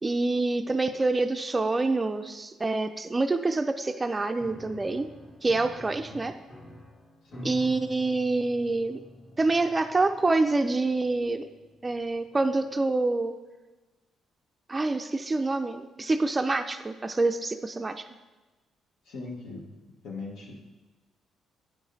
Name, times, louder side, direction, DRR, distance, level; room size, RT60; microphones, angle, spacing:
voice 1, 0.0-5.1 5.4-6.3 7.4-9.0 9.4-11.5 11.8-13.3 14.7-18.0, right 3 dB, 20° right, 7 dB, 0.3 m, -26 dB
Piano, 4.3-12.8, left 1 dB, 45° left, 1.6 m, -48 dB
voice 2, 7.3-7.8 19.0-19.8 20.0-20.5, left 3 dB, 85° left, -2 dB, 1.2 m, -40 dB
8.8 x 4.8 x 2.7 m, 1.2 s
cardioid pair, 90°, 0 cm